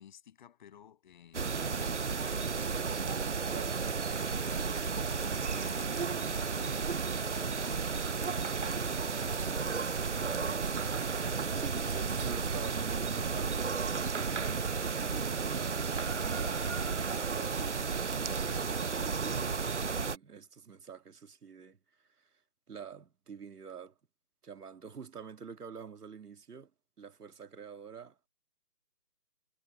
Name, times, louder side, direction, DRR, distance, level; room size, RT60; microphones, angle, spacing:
voice 1, 0.0-3.0 3.5-10.8, left 9 dB, 30° left, 7.3 m, -56 dB
sound 1, 1.3-20.2, right 5 dB, 50° right, 0.5 m, -33 dB
voice 2, 3.3-3.8 11.5-22.4 22.7-23.9 24.4-26.7 27.0-28.2, right 6 dB, 70° right, 2.4 m, -48 dB
hypercardioid pair, 175°, 49 cm